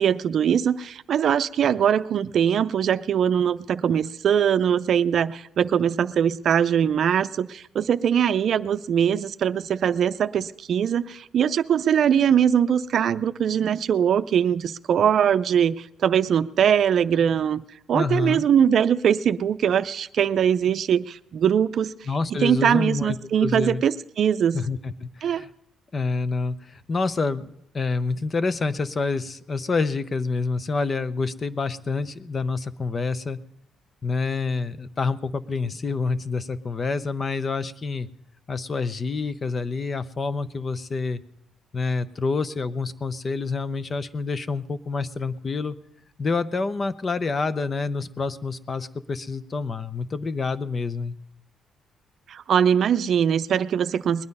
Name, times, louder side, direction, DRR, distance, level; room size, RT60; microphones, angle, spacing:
voice 1, 0.0-17.6 17.9-21.9 22.3-24.6 25.2-25.4 52.3-54.3, right 8 dB, 60° right, 0.5 m, -22 dB
voice 2, 17.9-18.4 22.1-23.8 24.5-25.5 25.9-33.4 34.0-38.1 38.5-41.2 41.7-45.8 46.2-51.2, left 4 dB, 35° left, 0.7 m, -27 dB
20.5 x 9.6 x 5.4 m
cardioid pair, 90°, 0 cm